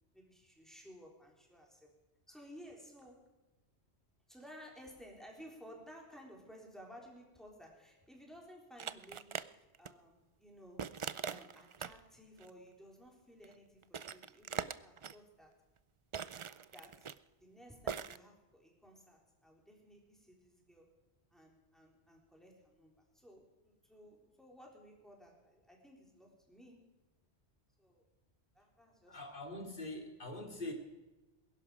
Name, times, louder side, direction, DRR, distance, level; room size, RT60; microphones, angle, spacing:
voice 1, 0.1-1.9 2.3-3.2 4.3-9.4 9.8-10.9 11.2-15.5 16.7-17.1 17.4-20.9 21.3-26.8 27.8-28.1 28.5-29.2, equal, ahead, -1 dB, 3.6 m, -56 dB
sound 1, 8.8-9.5 9.7-9.9 10.8-12.0 12.4-12.5 13.4-13.5 13.8-15.1 16.1-17.2 17.9-18.2, right 7 dB, 50° right, 0.4 m, -41 dB
voice 2, 29.1-30.7, left 2 dB, 50° left, 2 dB, 2.8 m, -43 dB
21.0 x 11.5 x 5.0 m, 1.1 s
omnidirectional pair, 1.1 m